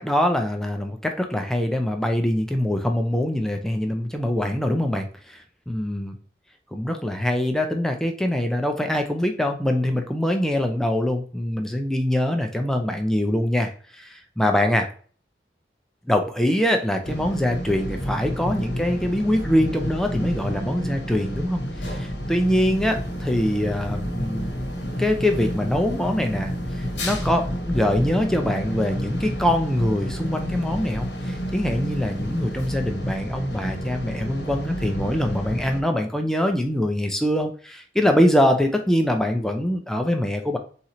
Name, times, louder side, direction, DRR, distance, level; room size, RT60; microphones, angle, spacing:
voice 1, 0.0-6.1 6.7-14.9 16.1-24.5 25.0-40.6, left 1 dB, 5° left, 4 dB, 0.4 m, -24 dB
sound 1, 17.0-35.8, equal, 85° left, 0.9 m, -30 dB
3.7 x 2.9 x 4.1 m, 0.43 s
head